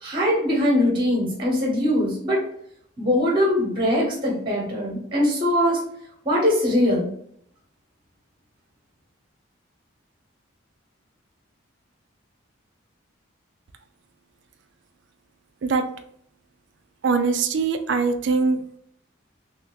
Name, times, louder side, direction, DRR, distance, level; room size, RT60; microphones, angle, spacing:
voice 1, 0.0-2.4 3.0-5.8 6.2-7.1, left 1 dB, 25° right, -3 dB, 1.0 m, -21 dB
voice 2, 17.0-18.6, right 4 dB, 60° right, 8 dB, 0.4 m, -22 dB
3.2 x 2.7 x 3.0 m, 0.67 s
head